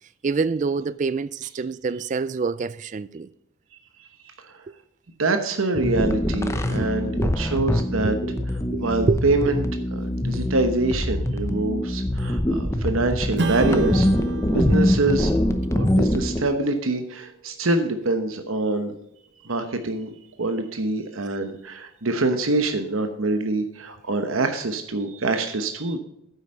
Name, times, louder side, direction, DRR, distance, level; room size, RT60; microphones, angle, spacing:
voice 1, 0.2-3.3 6.8-6.9 7.2-7.3 8.0-9.2, right 4 dB, 35° right, 0.3 m, -26 dB
voice 2, 5.2-8.2 8.8-9.6 9.9-15.3 15.7-18.9 19.4-20.1 20.4-26.0, right 2 dB, 85° right, 1.1 m, -25 dB
sound 1, 5.7-16.4, left 1 dB, 15° left, 0.8 m, -24 dB
Strum, 13.4-18.3, right 3 dB, 55° right, 0.9 m, -33 dB
9.7 x 8.1 x 5.5 m
head